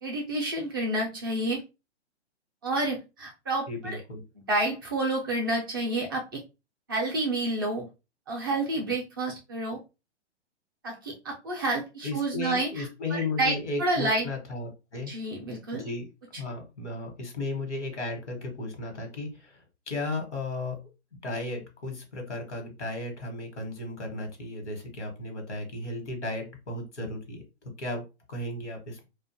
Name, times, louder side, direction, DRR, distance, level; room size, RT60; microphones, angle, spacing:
voice 1, 0.0-1.6 2.6-4.0 4.5-6.4 6.9-7.8 8.3-9.8 10.8-12.9 13.4-14.3 15.1-15.8, right 2 dB, 20° right, -1 dB, 0.3 m, -29 dB
voice 2, 3.7-4.2 12.0-15.1 15.7-16.1 16.4-20.8 21.2-27.4 27.8-28.0 28.3-29.0, left 2 dB, 80° left, 3 dB, 1.1 m, -35 dB
2.5 x 2.2 x 2.5 m, 0.27 s
figure-of-eight pair, 120°, 35 cm